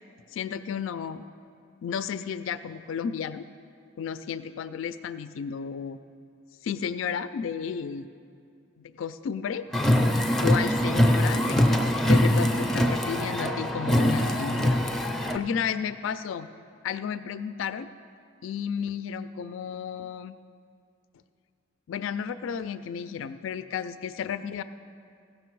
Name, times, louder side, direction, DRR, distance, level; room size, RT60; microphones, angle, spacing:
voice 1, 0.3-1.2 1.8-3.5 4.0-6.0 6.6-8.1 8.8-9.7 10.4-16.5 16.8-17.9 18.4-20.4 21.9-24.6, left 7 dB, 85° left, 13 dB, 0.3 m, -33 dB
Car, 9.7-15.4, left 1 dB, ahead, 0.4 m, -23 dB
16.0 x 6.5 x 4.6 m, 2.4 s
head